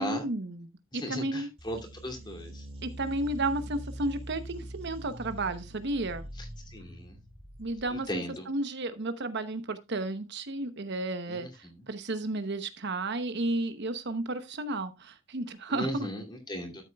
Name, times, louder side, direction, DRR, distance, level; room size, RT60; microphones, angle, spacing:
voice 1, 0.0-1.5 2.8-6.3 7.6-16.1, right 2 dB, 55° right, 0.9 m, -33 dB
voice 2, 0.9-2.6 6.7-7.1 7.9-8.4 11.3-11.7 15.7-16.8, equal, 20° left, 2.6 m, -37 dB
sound 1, 1.6-8.1, equal, 30° right, 1.9 m, -43 dB
12.5 x 8.0 x 2.3 m
head